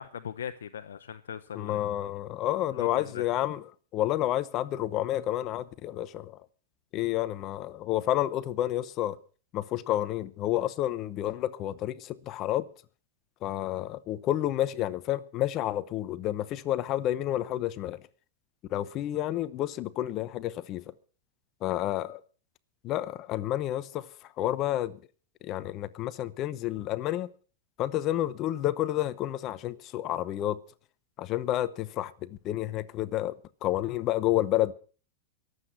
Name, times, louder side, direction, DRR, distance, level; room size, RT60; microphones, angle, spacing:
voice 1, 0.0-1.8 2.8-3.3, left 8 dB, 90° left, 0.7 m, -39 dB
voice 2, 1.5-3.6 3.9-6.4 6.9-9.2 9.5-12.7 13.4-18.0 18.7-20.8 21.6-22.2 22.8-24.1 24.4-25.0 25.4-27.3 27.8-30.6 31.2-34.7, left 13 dB, 40° left, 0.8 m, -30 dB
22.5 x 8.1 x 5.7 m
hypercardioid pair, 125°, 0 cm